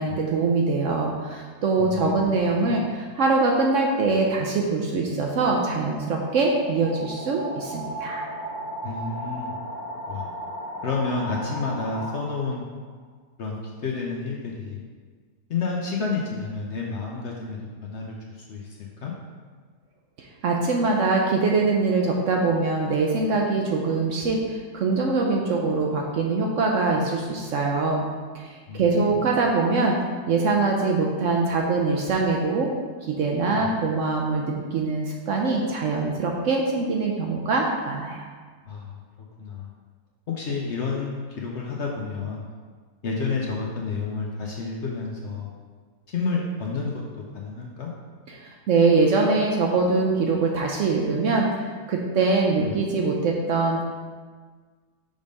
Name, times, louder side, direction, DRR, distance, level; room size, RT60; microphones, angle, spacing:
voice 1, 0.0-8.2 20.2-28.0 28.3-29.9 30.3-32.7 33.0-38.2 48.3-51.5 51.9-53.8, right 3 dB, 65° right, 0 dB, 0.8 m, -23 dB
voice 2, 1.8-2.1 2.7-2.8 8.8-9.6 10.1-10.3 10.8-12.7 13.4-14.8 15.5-19.1 28.7-28.9 29.2-29.3 33.5-33.7 38.7-39.0 39.4-39.7 40.3-42.5 43.0-45.5 46.1-47.0 47.3-47.9 52.6-52.7, left 4 dB, 60° left, -2 dB, 0.8 m, -30 dB
sound 1, 5.1-12.7, right 1 dB, 25° left, 1.4 m, -36 dB
5.1 x 3.5 x 5.2 m, 1.5 s
omnidirectional pair, 1.7 m